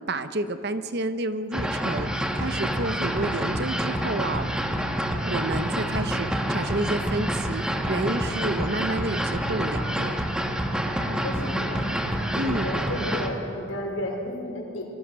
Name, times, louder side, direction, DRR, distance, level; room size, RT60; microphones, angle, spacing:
voice 1, 0.1-4.5 5.2-10.1 12.3-12.7, right 2 dB, 50° right, 10 dB, 0.9 m, -30 dB
sound 1, 1.5-13.3, equal, 5° right, 1.4 m, -27 dB
voice 2, 11.0-11.9 12.4-14.8, left 1 dB, 75° left, 0 dB, 5.2 m, -33 dB
26.5 x 21.5 x 6.3 m, 2.7 s
head